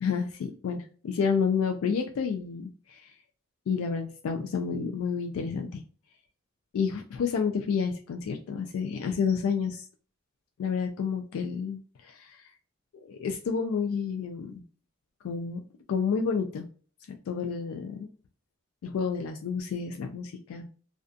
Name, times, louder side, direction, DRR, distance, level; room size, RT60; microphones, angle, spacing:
voice 1, 0.0-3.1 3.7-5.8 6.7-9.9 10.6-12.4 13.1-14.5 15.2-15.6 15.9-16.7 17.3-18.1 18.8-20.7, left 6 dB, 90° left, 4 dB, 0.3 m, -30 dB
2.5 x 2.3 x 2.4 m, 0.41 s
head